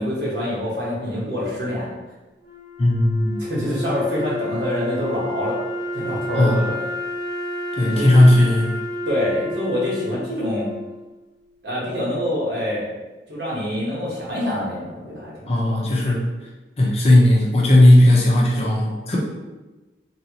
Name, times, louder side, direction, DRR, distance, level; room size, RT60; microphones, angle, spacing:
voice 1, 0.0-1.9 3.4-5.6 5.9-6.8 7.8-8.1 9.1-10.7 11.6-12.9 13.3-15.8, left 1 dB, 70° right, -6 dB, 1.1 m, -25 dB
Wind instrument woodwind instrument, 2.4-11.4, left 1 dB, 20° right, 0.8 m, -31 dB
voice 2, 2.8-3.4 6.3-6.6 7.7-8.7 15.5-16.2 16.8-19.2, left 1 dB, 35° left, -3 dB, 0.6 m, -15 dB
3.1 x 2.7 x 2.9 m, 1.1 s
head